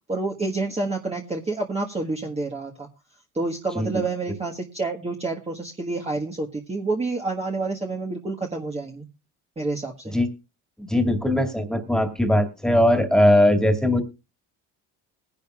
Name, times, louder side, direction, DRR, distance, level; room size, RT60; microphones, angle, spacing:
voice 1, 0.1-2.9 3.3-9.1 9.6-10.2, right 3 dB, 15° right, 0 dB, 1.5 m, -28 dB
voice 2, 10.8-14.0, left 1 dB, ahead, 5 dB, 2.3 m, -20 dB
21.5 x 10.5 x 2.4 m, 0.27 s
supercardioid pair, 95°, 35 cm